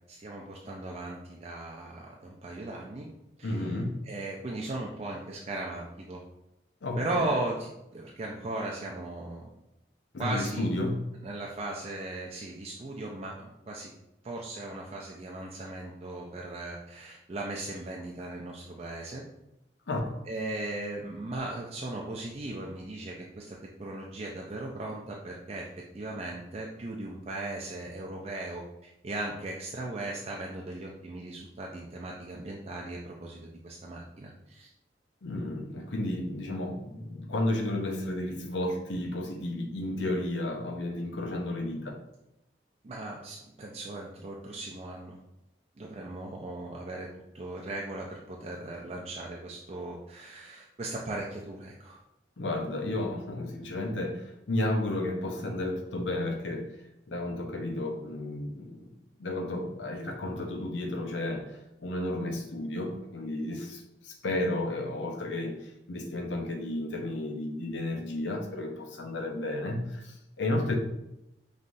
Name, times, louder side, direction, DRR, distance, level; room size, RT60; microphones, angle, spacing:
voice 1, 0.1-3.1 3.4-3.7 4.0-6.2 7.0-9.5 10.2-10.7 11.2-13.9 14.2-19.2 20.3-25.7 25.9-34.7 42.8-45.2 45.8-47.1 47.3-52.0, right 2 dB, 35° right, -2 dB, 0.4 m, -37 dB
voice 2, 3.4-4.0 6.8-7.3 10.1-11.0 19.9-20.2 35.2-42.0 52.4-56.7 57.1-58.8 59.2-65.6 65.9-70.8, left 1 dB, 85° left, 3 dB, 0.7 m, -32 dB
5.3 x 3.1 x 2.5 m, 0.86 s
head